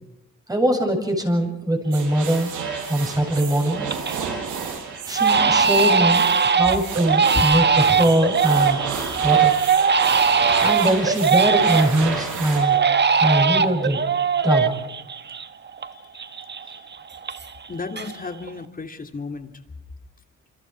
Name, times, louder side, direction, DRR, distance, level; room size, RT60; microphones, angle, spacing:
voice 1, 0.5-2.5 2.9-3.9 5.1-8.8 9.2-9.5 10.6-12.8 13.2-14.0 14.4-14.7, right 1 dB, 10° right, 3 dB, 7.9 m, -22 dB
sound 1, 1.9-12.6, right 5 dB, 80° right, 6.6 m, -31 dB
Crying sobbing, 2.0-2.1 2.5-3.0 3.4-4.2 4.5-4.7 5.1-12.1 12.5-15.9 16.1-17.7 17.9-18.5, right 6 dB, 35° right, 1.5 m, -20 dB
voice 2, 15.9-16.9 17.7-19.5, left 4 dB, 30° left, 7 dB, 3.0 m, -35 dB
27.0 x 26.5 x 4.8 m, 0.88 s
cardioid pair, 90°, 30 cm